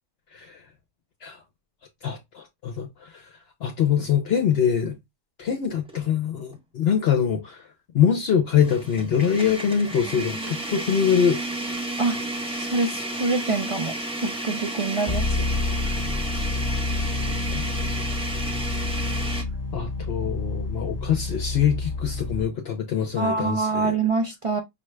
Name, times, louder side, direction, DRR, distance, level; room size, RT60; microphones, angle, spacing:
voice 1, 0.3-0.6 1.2-1.4 2.0-3.2 3.6-5.0 5.4-7.6 7.9-11.4 15.9-16.0 16.3-16.5 17.5-17.6 19.7-23.9, left 8 dB, 60° left, 0.8 m, -24 dB
sound 1, 5.8-6.0 6.5-6.6 8.6-19.4, right 1 dB, 5° right, 0.9 m, -32 dB
voice 2, 12.6-14.0 14.2-15.3 23.2-24.6, right 3 dB, 45° right, 0.4 m, -25 dB
sound 2, 15.1-22.5, left 3 dB, 20° left, 1.0 m, -28 dB
5.6 x 2.4 x 3.1 m
omnidirectional pair, 1.3 m